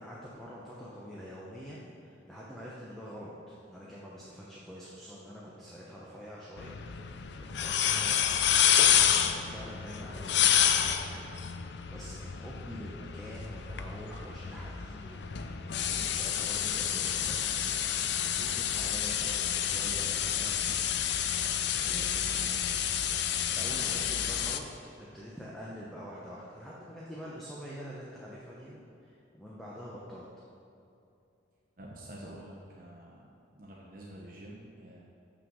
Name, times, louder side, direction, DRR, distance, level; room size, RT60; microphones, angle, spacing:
voice 1, 0.0-7.1 7.4-11.5 11.9-15.5 15.8-20.8 21.7-22.6 23.6-24.6 25.1-30.3, equal, ahead, -7 dB, 1.0 m, -46 dB
sound 1, 6.6-24.6, left 9 dB, 60° left, 0.5 m, -29 dB
voice 2, 31.8-33.3 33.6-35.0, right 1 dB, 45° right, -3 dB, 1.0 m, -48 dB
7.3 x 6.6 x 6.3 m, 2.6 s
head